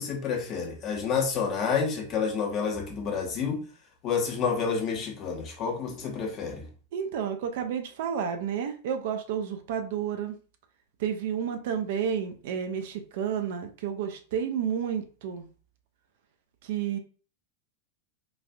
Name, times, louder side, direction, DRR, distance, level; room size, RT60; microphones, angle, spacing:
voice 1, 0.0-3.6 4.0-6.6, left 6 dB, 35° left, 1 dB, 0.9 m, -29 dB
voice 2, 6.9-10.4 11.0-15.5 16.6-17.0, right 8 dB, 55° right, 6 dB, 0.5 m, -31 dB
4.0 x 2.4 x 2.2 m, 0.39 s
figure-of-eight pair, 90°, 0 cm